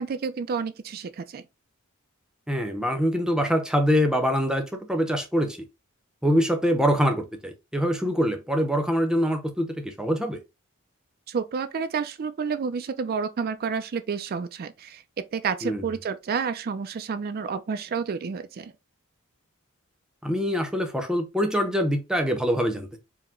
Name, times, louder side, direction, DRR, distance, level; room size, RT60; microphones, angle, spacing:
voice 1, 0.0-1.4 11.3-15.0 15.3-18.7, right 5 dB, 45° right, 0.4 m, -30 dB
voice 2, 2.5-5.6 6.2-10.4 15.6-15.9 20.2-23.0, equal, 5° right, 0.7 m, -24 dB
4.7 x 2.1 x 3.6 m
head